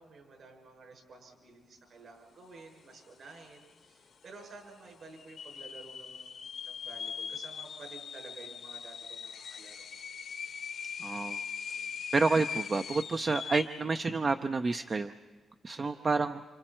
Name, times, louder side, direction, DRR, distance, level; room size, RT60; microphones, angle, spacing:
voice 1, 0.0-9.9 11.7-12.0 15.8-16.1, right 3 dB, 65° right, 1 dB, 6.7 m, -52 dB
sound 1, 3.0-3.1 3.3-3.8 4.3-4.4 5.2-13.9, left 7 dB, 65° left, 1.0 m, -41 dB
voice 2, 11.0-11.4 12.1-15.1 15.6-16.4, right 3 dB, 35° right, 8 dB, 0.6 m, -29 dB
29.0 x 27.5 x 4.5 m, 1.3 s
cardioid pair, 80°, 0 cm